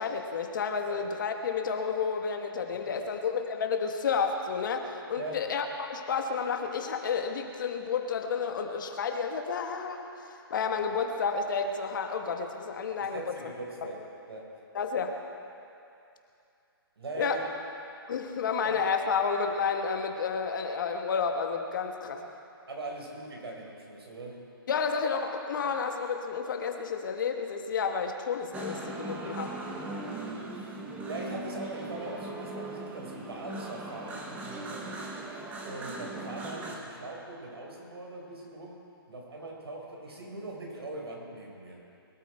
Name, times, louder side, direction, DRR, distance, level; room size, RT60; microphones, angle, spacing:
voice 1, 0.0-10.1 10.5-13.5 14.7-15.1 17.2-17.4 18.1-22.2 24.7-29.5, left 5 dB, 55° left, 4 dB, 1.6 m, -31 dB
voice 2, 2.7-3.2 5.2-5.5 13.1-14.6 17.0-17.4 18.6-18.9 22.7-24.4 29.0-30.1 30.5-35.1 35.6-38.8 39.1-41.8, right 2 dB, 85° right, 0 dB, 4.7 m, -41 dB
sound 1, 28.5-36.8, right 2 dB, 10° right, 1.2 m, -39 dB
22.5 x 13.0 x 4.5 m, 2.7 s
hypercardioid pair, 160°, 13 cm